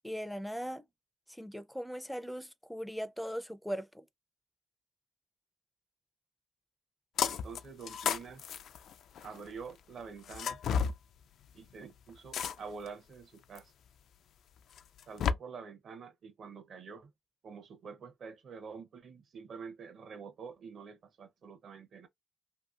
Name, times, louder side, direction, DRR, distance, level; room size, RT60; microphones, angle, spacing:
voice 1, 0.0-0.8 1.3-4.0, equal, ahead, 0.4 m, -39 dB
sound 1, 7.2-7.6 7.9-9.4 10.3-11.0 12.3-12.9 13.6-13.7 14.8-15.3, left 7 dB, 80° left, 0.3 m, -32 dB
voice 2, 7.2-8.4 9.2-10.6 11.5-13.7 15.1-17.1 17.4-22.1, right 5 dB, 60° right, 0.7 m, -47 dB
2.9 x 2.8 x 2.4 m
cardioid pair, 120°, 0 cm